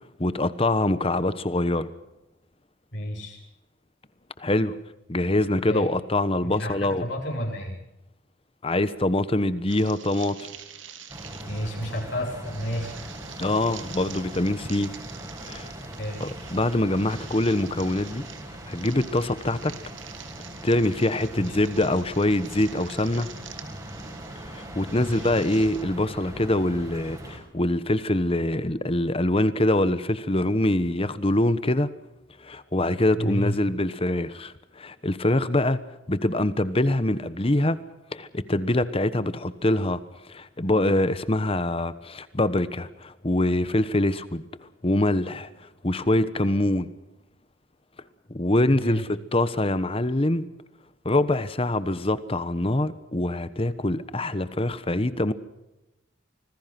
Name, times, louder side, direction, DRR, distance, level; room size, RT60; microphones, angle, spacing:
voice 1, 0.2-1.9 4.4-4.8 5.1-7.0 8.6-10.5 13.4-14.9 15.4-15.7 16.2-18.2 18.7-19.7 20.6-23.3 24.5-31.9 32.4-35.8 36.1-37.8 38.1-40.0 40.3-44.4 44.8-45.5 45.8-46.9 48.3-50.4 51.0-55.3, left 1 dB, 30° left, 14 dB, 1.2 m, -24 dB
voice 2, 2.9-3.4 5.7-5.9 6.6-7.8 11.4-13.0 16.0-16.2 21.3-21.7 25.0-25.3 33.1-33.5 48.8-49.0, equal, 60° left, -1 dB, 6.1 m, -31 dB
sound 1, 9.7-25.8, right 8 dB, 75° right, 2.7 m, -46 dB
sound 2, 11.1-27.4, right 1 dB, 20° right, 5.3 m, -40 dB
26.5 x 20.0 x 6.0 m, 0.94 s
head